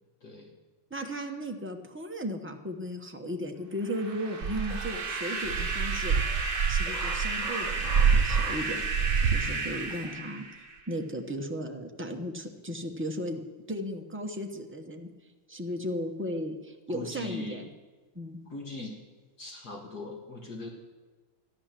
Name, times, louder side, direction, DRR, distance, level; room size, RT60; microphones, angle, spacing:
voice 1, 0.9-6.2 6.7-8.8 9.2-10.5 10.9-15.1 15.5-17.7 18.1-18.4, equal, 15° right, 3 dB, 0.4 m, -36 dB
sound 1, 3.8-10.9, right 3 dB, 35° right, 1.1 m, -34 dB
sound 2, 4.4-5.0 5.4-9.5, right 6 dB, 75° right, 0.6 m, -27 dB
sound 3, 4.7-10.1, right 2 dB, 15° left, 3.8 m, -44 dB
voice 2, 16.9-17.7 18.5-19.0 19.4-20.7, left 2 dB, 50° left, 1 dB, 2.0 m, -40 dB
13.5 x 11.0 x 7.5 m, 1.3 s
omnidirectional pair, 2.2 m